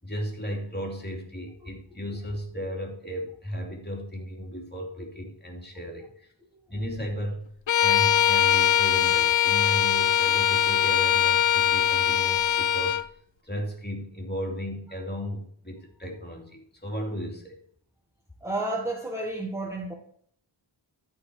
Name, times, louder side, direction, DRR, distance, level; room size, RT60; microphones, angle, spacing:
voice 1, 0.0-6.3 6.7-7.4 7.8-13.0 13.4-17.6, equal, 20° left, 0 dB, 2.8 m, -35 dB
Bowed string instrument, 7.7-13.1, left 10 dB, 70° left, 0.6 m, -22 dB
voice 2, 18.4-19.9, right 2 dB, 5° right, -1 dB, 1.5 m, -31 dB
13.5 x 4.7 x 4.7 m, 0.64 s
wide cardioid pair, 50°, 48 cm